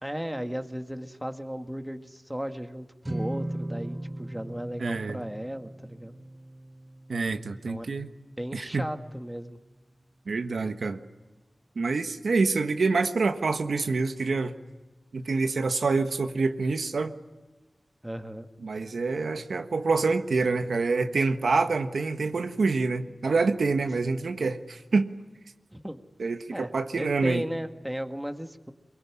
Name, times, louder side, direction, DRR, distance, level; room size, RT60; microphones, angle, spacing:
voice 1, 0.0-6.1 7.7-7.9 8.4-9.6 18.0-18.5 24.0-24.2 25.7-26.0 26.5-28.7, equal, 5° right, 6 dB, 1.9 m, -35 dB
sound 1, 3.0-9.5, right 1 dB, 25° right, 3.7 m, -39 dB
voice 2, 4.8-5.2 7.1-8.1 8.5-8.8 10.3-11.0 11.7-14.5 15.1-17.1 18.6-25.1 26.2-27.4, right 4 dB, 80° right, 7 dB, 1.4 m, -26 dB
23.5 x 23.0 x 9.8 m, 1.2 s
wide cardioid pair, 70°, 0 cm